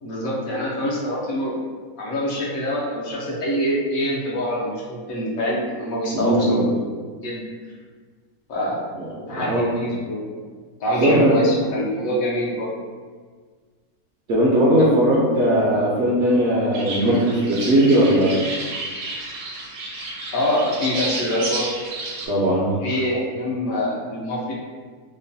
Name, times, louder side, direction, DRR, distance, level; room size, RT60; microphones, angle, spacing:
voice 1, 0.0-1.6 2.0-6.9 7.2-7.4 8.5-8.8 9.1-10.3 10.8-12.7 14.8-14.9 20.3-21.6 22.8-24.5, equal, 70° left, -5 dB, 1.0 m, -25 dB
voice 2, 6.1-6.7 9.3-9.7 11.0-11.4 14.3-18.4 22.3-22.8, right 1 dB, 65° right, -6 dB, 0.7 m, -18 dB
sound 1, 16.7-22.3, right 2 dB, 90° right, 1.1 m, -31 dB
3.0 x 2.1 x 2.6 m, 1.5 s
omnidirectional pair, 1.6 m